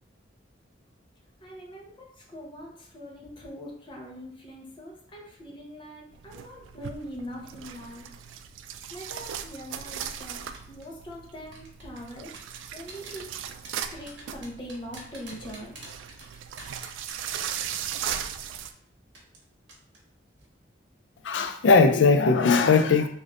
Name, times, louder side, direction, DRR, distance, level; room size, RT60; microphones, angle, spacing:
voice 1, 1.4-8.1 8.9-12.3 12.7-13.3 13.9-15.8, equal, 25° left, -2 dB, 0.8 m, -42 dB
sound 1, 6.1-18.7, right 9 dB, 85° right, 0.3 m, -38 dB
sound 2, 10.5-10.9 11.5-17.8 18.1-18.2 18.6-18.7 19.1-19.4 19.7-20.0 20.3-20.5, right 3 dB, 65° right, 1.1 m, -46 dB
voice 2, 21.2-23.1, left 4 dB, 80° left, 6 dB, 0.4 m, -19 dB
3.4 x 2.7 x 3.7 m, 0.63 s
head